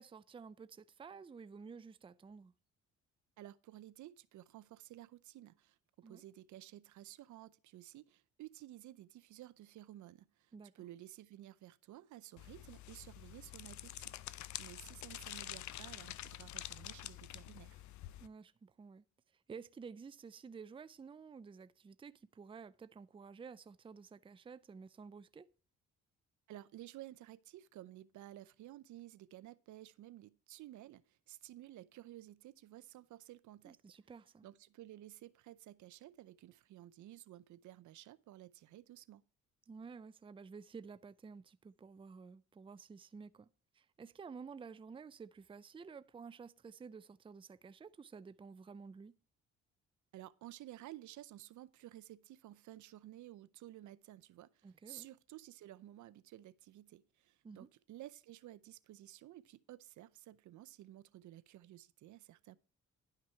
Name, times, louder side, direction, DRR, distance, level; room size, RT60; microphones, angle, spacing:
voice 1, 0.0-2.5 6.0-6.2 10.5-10.9 18.2-19.0 19.5-25.5 33.6-34.5 39.7-43.5 43.7-49.1 54.6-55.1 57.4-57.7, right 5 dB, 15° right, 0.5 m, -52 dB
voice 2, 3.4-5.8 6.1-14.2 14.6-17.8 26.5-33.8 34.4-39.2 50.1-62.6, right 14 dB, 75° right, 0.6 m, -54 dB
sound 1, 12.4-18.3, left 14 dB, 70° left, 0.6 m, -48 dB
11.0 x 5.9 x 4.5 m
cardioid pair, 90°, 30 cm